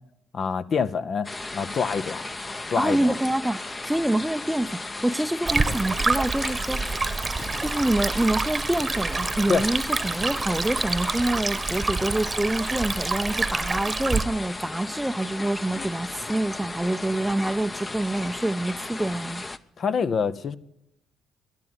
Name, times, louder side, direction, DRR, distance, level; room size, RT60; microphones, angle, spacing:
voice 1, 0.3-2.3 2.7-3.1 5.7-5.8 9.5-9.7 19.8-20.6, left 5 dB, 50° left, 0.8 m, -26 dB
sound 1, 1.2-19.6, left 2 dB, 25° left, 0.8 m, -35 dB
voice 2, 2.7-6.8 7.6-19.4, right 1 dB, 5° right, 0.6 m, -26 dB
Stream, 5.5-14.2, right 4 dB, 30° right, 1.0 m, -27 dB
11.5 x 11.0 x 9.6 m
supercardioid pair, 70°, 0 cm